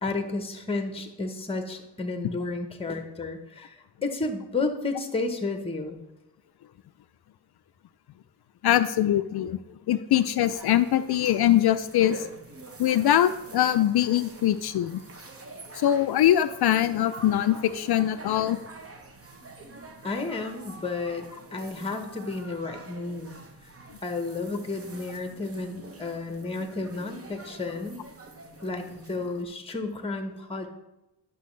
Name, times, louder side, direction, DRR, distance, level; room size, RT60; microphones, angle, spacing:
voice 1, 0.0-6.0 20.0-21.2 21.5-23.3 23.6-23.7 24.0-28.0 28.6-30.7, left 3 dB, 15° left, 6 dB, 1.0 m, -32 dB
voice 2, 8.6-9.6 9.9-12.3 12.8-15.0 15.7-18.6, left 11 dB, 60° left, 12 dB, 0.5 m, -22 dB
sound 1, 10.4-29.4, right 3 dB, 30° right, 1.1 m, -46 dB
11.0 x 6.1 x 3.2 m, 0.95 s
cardioid pair, 85°, 44 cm